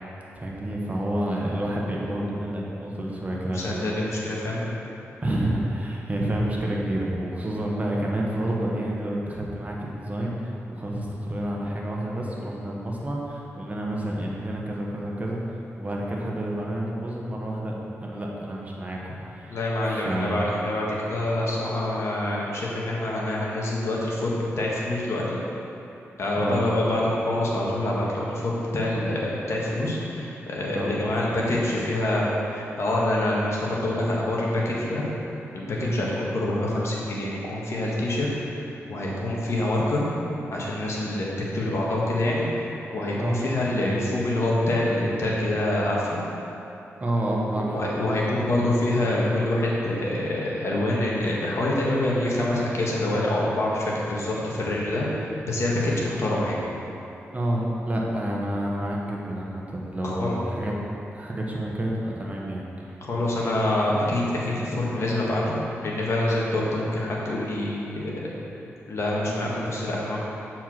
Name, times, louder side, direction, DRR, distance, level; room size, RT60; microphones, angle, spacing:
voice 1, 0.3-4.0 5.2-15.4 15.8-17.7 18.0-19.6 19.9-20.5 26.4-26.6 30.7-30.9 35.7-36.0 43.2-43.4 47.0-47.8 57.3-60.7 61.1-62.6, right 1 dB, 30° right, -3 dB, 1.4 m, -29 dB
voice 2, 3.5-4.8 19.5-25.4 26.2-35.0 35.5-40.1 40.5-46.2 47.7-56.6 60.0-60.3 63.0-68.3 68.9-70.2, left 1 dB, 65° left, -5 dB, 1.6 m, -26 dB
7.1 x 4.6 x 6.1 m, 2.9 s
cardioid pair, 75°, 5 cm